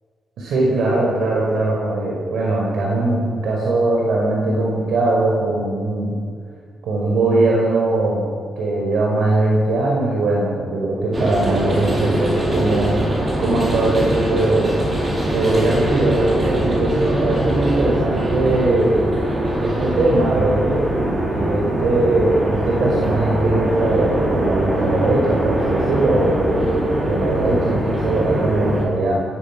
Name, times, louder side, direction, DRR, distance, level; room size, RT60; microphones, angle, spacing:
voice 1, 0.4-6.2 6.8-8.3 8.6-14.8 15.3-19.0 19.6-29.2, right 2 dB, 75° right, -3 dB, 5.3 m, -20 dB
sound 1, 11.1-28.9, right 1 dB, 25° right, 4.8 m, -22 dB
29.0 x 20.0 x 6.2 m, 2.1 s
wide cardioid pair, 155°, 0 cm